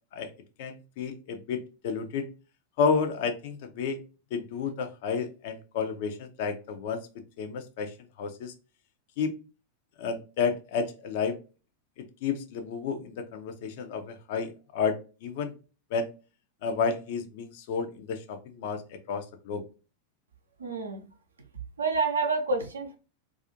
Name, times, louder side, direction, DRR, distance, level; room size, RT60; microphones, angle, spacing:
voice 1, 0.6-2.3 2.8-4.0 4.3-7.0 7.4-8.5 9.2-9.3 10.0-11.4 12.0-15.5 15.9-16.1 16.6-19.6, left 5 dB, 50° left, 7 dB, 0.4 m, -31 dB
voice 2, 20.6-21.0 21.8-23.0, right 3 dB, 70° right, 4 dB, 0.5 m, -28 dB
2.4 x 2.4 x 2.6 m, 0.33 s
figure-of-eight pair, 90°, 0 cm